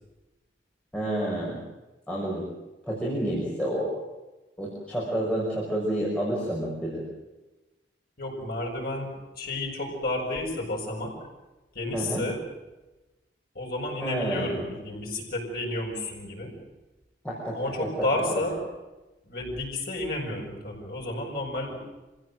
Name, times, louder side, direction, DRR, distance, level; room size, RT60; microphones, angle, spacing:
voice 1, 0.9-1.6 2.1-2.5 2.8-3.9 4.6-7.0 11.9-12.2 14.0-14.6 17.2-18.1, right 1 dB, 5° left, -5 dB, 6.0 m, -29 dB
voice 2, 8.2-11.1 11.7-12.4 13.5-16.5 17.5-18.6 19.2-21.8, left 1 dB, 60° left, 0 dB, 7.8 m, -31 dB
27.5 x 16.5 x 7.9 m, 1.1 s
head